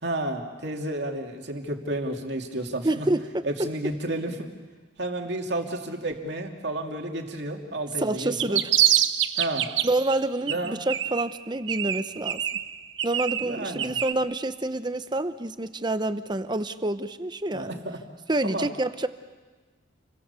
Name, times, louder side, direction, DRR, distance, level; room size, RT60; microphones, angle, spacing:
voice 1, 0.0-3.1 3.4-4.5 5.0-8.6 9.4-9.7 10.5-10.8 13.4-14.0 17.5-18.0 18.4-18.7, right 1 dB, 60° right, 2 dB, 2.7 m, -31 dB
voice 2, 2.8-3.7 8.0-8.6 9.8-12.4 13.0-17.8 18.3-19.1, right 2 dB, 25° right, 11 dB, 0.8 m, -28 dB
sound 1, 8.2-10.1 10.5-11.4 11.7-14.1, right 11 dB, 75° right, 0.9 m, -25 dB
29.5 x 23.0 x 7.0 m, 1.3 s
head